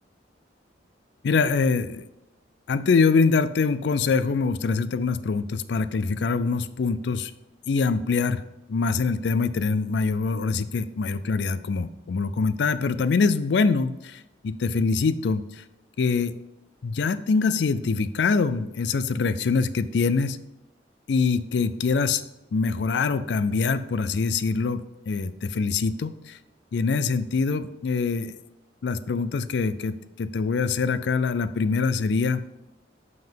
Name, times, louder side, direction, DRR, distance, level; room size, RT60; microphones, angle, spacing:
voice 1, 1.2-2.0 2.7-7.3 7.7-8.4 8.7-15.4 16.0-16.3 16.8-20.4 21.1-22.2 22.5-26.4 26.7-28.4 28.8-32.4, left 4 dB, 70° left, 13 dB, 0.4 m, -24 dB
5.7 x 5.4 x 5.5 m, 0.92 s
head